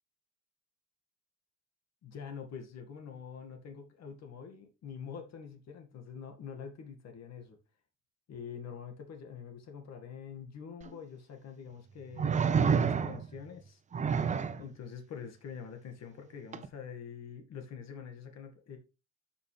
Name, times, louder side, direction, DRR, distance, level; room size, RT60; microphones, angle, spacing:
voice 1, 2.0-7.6 8.3-13.8 14.6-18.8, left 7 dB, 55° left, 2.0 m, -45 dB
sound 1, 10.8-10.9 12.2-13.4 13.9-14.6 16.5-16.7, right 6 dB, 25° right, 0.5 m, -28 dB
12.5 x 5.9 x 3.4 m
cardioid pair, 170°, 32 cm